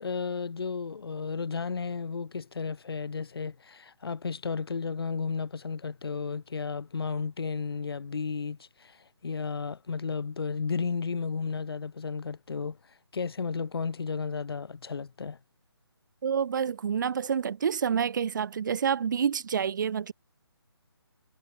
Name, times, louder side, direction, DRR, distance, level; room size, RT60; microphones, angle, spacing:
voice 1, 0.0-15.4, left 5 dB, 60° left, 2.4 m, -33 dB
voice 2, 16.2-20.1, right 7 dB, 45° right, 4.9 m, -28 dB
figure-of-eight pair, 155°, 14 cm